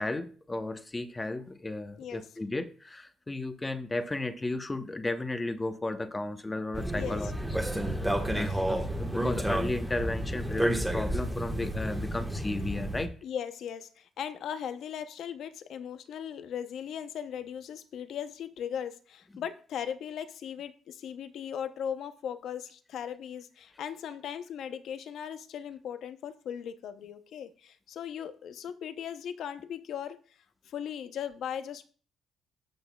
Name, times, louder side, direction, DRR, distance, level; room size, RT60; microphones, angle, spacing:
voice 1, 0.0-13.1, left 2 dB, 20° left, 0.9 m, -34 dB
sound 1, 6.7-13.1, right 1 dB, 5° right, 1.3 m, -31 dB
voice 2, 7.0-7.3 8.2-8.5 13.2-30.2 30.7-31.9, left 8 dB, 75° left, 0.7 m, -38 dB
13.0 x 6.3 x 2.3 m
cardioid pair, 90°, 0 cm